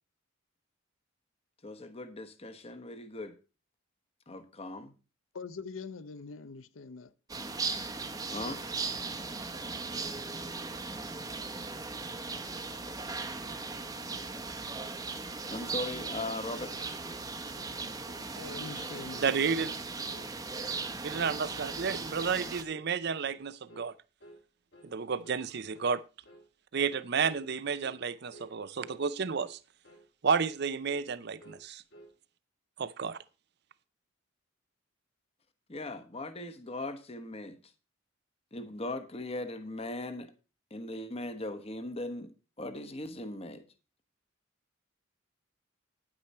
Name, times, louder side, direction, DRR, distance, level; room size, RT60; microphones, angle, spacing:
voice 1, 1.6-3.3 4.3-4.9 8.3-8.6 15.5-16.7 35.7-37.6 38.5-40.3 40.7-43.6, left 2 dB, 30° left, 1.1 m, -39 dB
voice 2, 5.3-7.1 18.3-19.3, left 4 dB, 80° left, 0.7 m, -43 dB
sound 1, 7.3-22.6, right 4 dB, 20° right, 0.9 m, -38 dB
sound 2, 17.0-17.3 17.5-17.8 18.1-18.3 18.6-18.8 19.1-19.3 19.6-19.8 20.1-20.3 20.6-20.9 21.1-21.4 21.6-21.9 22.2-22.4 22.7-22.9 23.2-23.4 23.7-23.9 24.2-24.4 24.7-25.0 25.2-25.5 25.7-26.0 26.3-26.5 26.8-27.0 27.3-27.5 27.8-28.0 28.3-28.6 28.8-29.0 29.3-29.6 29.8-30.1 30.4-30.6 30.9-31.1 31.4-32.2, right 1 dB, 60° left, 2.2 m, -54 dB
voice 3, 19.2-19.7 21.0-23.9 24.8-26.0 26.7-29.6 30.2-31.8 32.8-33.2, right 6 dB, 55° right, 0.5 m, -31 dB
10.0 x 8.9 x 4.3 m
head